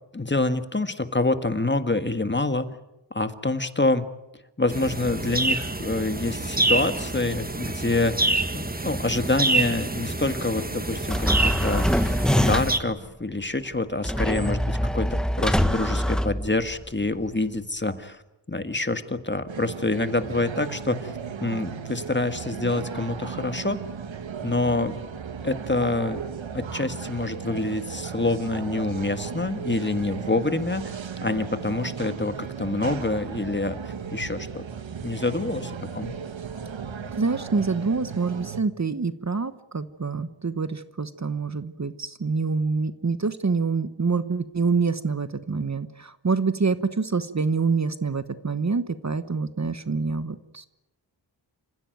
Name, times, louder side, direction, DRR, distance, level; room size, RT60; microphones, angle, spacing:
voice 1, 0.1-2.7 3.1-4.1 4.6-18.2 18.5-21.1 21.4-23.8 24.4-24.9 25.4-26.2 26.5-34.6 35.0-36.1, left 2 dB, 25° left, 10 dB, 1.6 m, -27 dB
sound 1, 4.7-12.8, right 2 dB, 20° right, 1.6 m, -27 dB
sound 2, 11.1-12.9 14.0-16.9, equal, ahead, 1.4 m, -24 dB
sound 3, 19.5-38.6, right 6 dB, 80° right, 1.4 m, -35 dB
voice 2, 37.1-50.7, right 4 dB, 35° right, 13 dB, 1.1 m, -26 dB
28.0 x 15.5 x 9.2 m, 0.94 s
wide cardioid pair, 55°, 45 cm